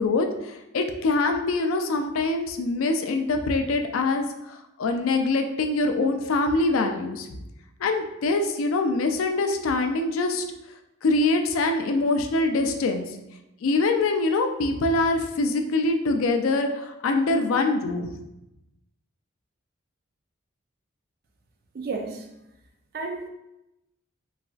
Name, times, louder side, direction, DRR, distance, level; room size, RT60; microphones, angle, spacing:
voice 1, 0.0-7.4 7.8-10.4 11.0-13.0 13.6-18.1, left 2 dB, 85° left, 5 dB, 0.4 m, -24 dB
voice 2, 21.7-22.3 22.9-23.3, right 3 dB, 45° right, 3 dB, 0.4 m, -32 dB
4.0 x 2.3 x 2.4 m, 0.90 s
head